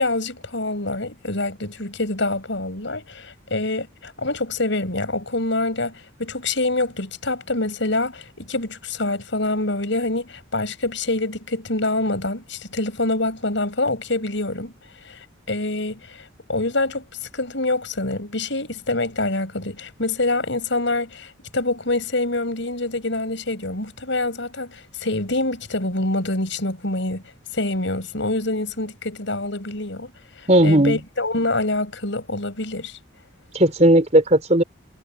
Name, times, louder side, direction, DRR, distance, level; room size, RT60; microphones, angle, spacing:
voice 1, 0.0-14.7 15.0-17.1 17.3-27.2 27.5-30.1 30.4-33.0, left 2 dB, 65° left, 5.7 m, -26 dB
voice 2, 30.5-31.0 33.5-34.6, right 1 dB, 35° right, 4.7 m, -15 dB
head